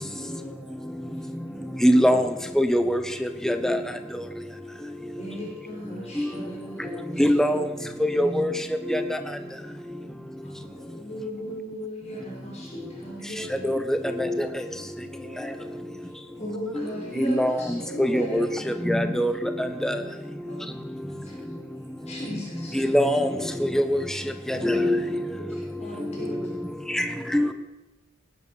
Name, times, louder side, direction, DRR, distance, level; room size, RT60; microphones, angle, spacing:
voice 1, 0.0-1.9 4.1-4.7 6.5-7.5 8.4-9.4 9.8-10.3 10.6-11.3 13.3-14.5 14.9-16.3 21.3-21.7 22.0-22.3 26.9-27.5, equal, 25° right, -5 dB, 6.3 m, -50 dB
voice 2, 1.8-2.3 2.6-3.0 3.4-3.8 6.2-6.3 7.2-7.6 8.2-8.5 8.9-9.1 13.6-14.5 17.3-17.6 18.0-18.5 18.8-20.0 22.8-23.3 23.6-24.0 24.5-25.2 26.9-27.0 27.3-27.5, equal, ahead, 8 dB, 0.8 m, -22 dB
voice 3, 5.2-7.2 7.4-7.6 10.4-13.7 16.4-19.3 20.5-20.6 21.2-21.3 22.1-22.9 24.5-25.1 25.8-26.6, equal, 35° left, -3 dB, 5.5 m, -37 dB
18.0 x 10.5 x 6.9 m, 1.1 s
head